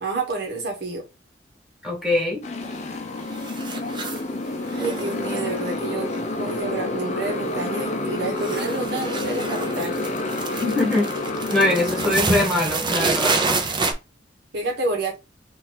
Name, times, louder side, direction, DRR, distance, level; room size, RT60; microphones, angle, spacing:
voice 1, 0.0-1.0 4.7-10.0 14.5-15.2, right 3 dB, 65° right, 1.2 m, -29 dB
voice 2, 1.8-2.4 10.6-11.1 11.5-13.4, left 2 dB, ahead, 1.9 m, -22 dB
Motorcycle, 2.4-12.2, left 2 dB, 40° left, 0.6 m, -29 dB
sound 1, 2.6-3.0 3.3-4.3 4.7-6.9 7.2-7.6 7.9-13.9, right 3 dB, 25° right, 0.7 m, -28 dB
4.0 x 2.6 x 4.2 m
head